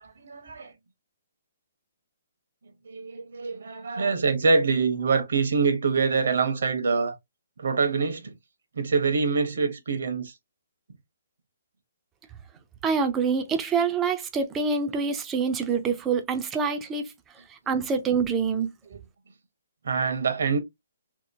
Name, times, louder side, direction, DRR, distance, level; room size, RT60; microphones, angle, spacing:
voice 1, 0.2-0.7 2.8-7.2 7.6-8.3 8.7-10.3 18.9-19.0 19.8-20.6, right 4 dB, 75° right, 0.9 m, -25 dB
voice 2, 12.8-17.1 17.5-18.7, right 5 dB, 10° right, 0.4 m, -26 dB
2.9 x 2.4 x 2.6 m
hypercardioid pair, 165°, 0 cm